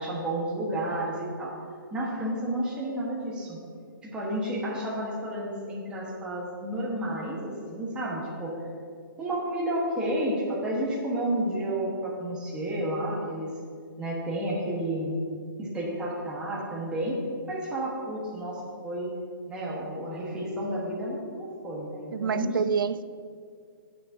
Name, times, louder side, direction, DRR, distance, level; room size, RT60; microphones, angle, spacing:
voice 1, 0.0-1.6 1.9-3.6 4.0-8.5 9.2-13.5 14.0-15.1 15.6-17.2 17.5-19.1 19.5-22.6, right 1 dB, 10° right, -5 dB, 1.2 m, -31 dB
voice 2, 22.1-23.0, right 6 dB, 65° right, 14 dB, 0.5 m, -27 dB
17.5 x 6.2 x 2.7 m, 2.2 s
hypercardioid pair, 160°, 12 cm